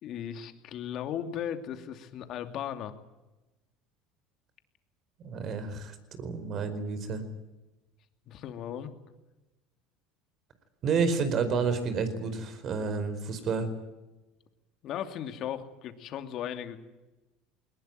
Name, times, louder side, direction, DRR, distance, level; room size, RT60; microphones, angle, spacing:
voice 1, 0.0-2.9 8.3-8.9 14.8-16.8, left 9 dB, 55° left, 8 dB, 2.7 m, -36 dB
voice 2, 5.2-7.2 10.8-13.7, right 5 dB, 45° right, 11 dB, 4.8 m, -30 dB
21.5 x 20.0 x 9.3 m, 1.1 s
supercardioid pair, 105°, 0 cm